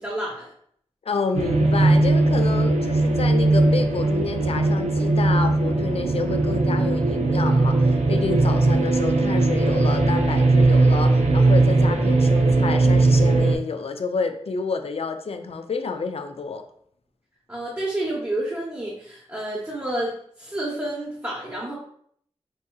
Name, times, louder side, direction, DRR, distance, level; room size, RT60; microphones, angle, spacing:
voice 1, 0.0-0.5 17.5-21.7, right 1 dB, 15° right, -6 dB, 0.8 m, -29 dB
voice 2, 1.1-16.6, left 4 dB, 60° left, 7 dB, 0.4 m, -29 dB
sound 1, 1.4-13.6, right 2 dB, 85° right, 0.5 m, -19 dB
4.5 x 2.6 x 2.3 m, 0.65 s
wide cardioid pair, 80°, 11 cm